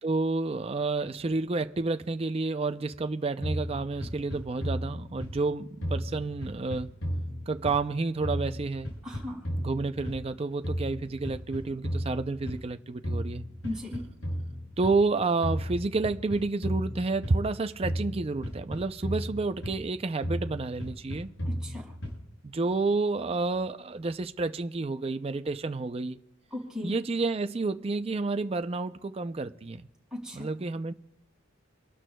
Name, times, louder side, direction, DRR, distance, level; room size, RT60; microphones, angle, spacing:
voice 1, 0.0-6.9 7.5-8.9 9.6-13.4 14.8-21.3 22.4-26.2 26.8-29.9 30.3-30.9, right 3 dB, 30° right, 0.4 m, -30 dB
sound 1, 3.4-5.5 5.8-8.0 8.2-10.3 10.6-12.7 13.0-15.0 15.4-17.5 17.8-19.9 20.2-22.3, equal, 80° left, 6.8 m, -34 dB
voice 2, 9.0-9.4 13.6-14.0 21.4-21.9 26.5-26.9 30.1-30.5, left 1 dB, 5° right, 4.8 m, -37 dB
29.5 x 12.5 x 2.3 m
head